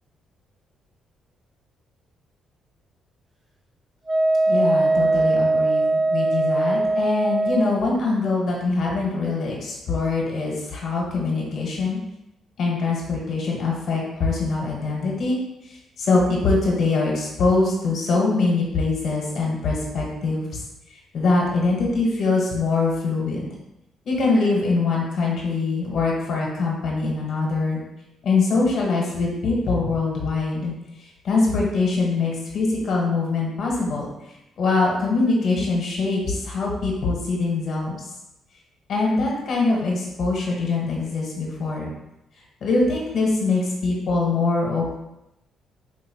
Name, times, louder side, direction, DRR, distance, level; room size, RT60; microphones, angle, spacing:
Wind instrument woodwind instrument, 4.1-7.7, right 2 dB, 30° right, 0.7 m, -20 dB
voice 1, 4.5-12.0 12.6-15.4 15.6-20.6 21.1-23.5 24.0-27.8 28.2-30.7 31.0-34.1 34.6-37.9 38.9-41.9 42.6-44.9, left 3 dB, 60° left, -2 dB, 1.2 m, -23 dB
4.6 x 2.8 x 2.9 m, 0.90 s
cardioid pair, 90°, 0 cm